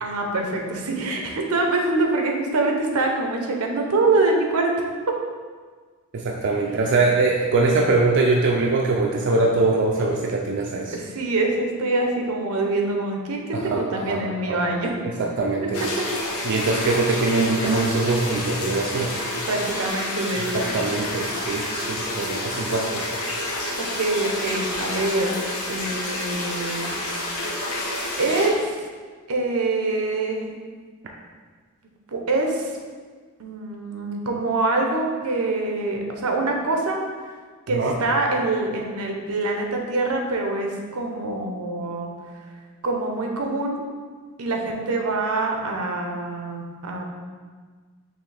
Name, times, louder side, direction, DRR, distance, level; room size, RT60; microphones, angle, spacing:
voice 1, 0.0-4.7 5.1-5.2 10.9-15.0 15.6-16.0 19.5-20.5 20.9-21.1 23.8-25.4 25.7-27.2 28.2-28.7 29.3-30.5 32.1-32.6 33.4-37.0 37.7-42.1 42.8-43.8 44.4-47.0, right 2 dB, 85° right, 1 dB, 0.7 m, -25 dB
voice 2, 6.1-11.0 13.5-13.8 14.1-14.6 15.2-15.8 16.4-19.1 20.5-23.0 37.7-37.9, right 3 dB, 55° right, -1 dB, 0.4 m, -22 dB
sound 1, 15.7-28.5, left 1 dB, 80° left, 0.8 m, -29 dB
5.8 x 2.8 x 3.3 m, 1.5 s
head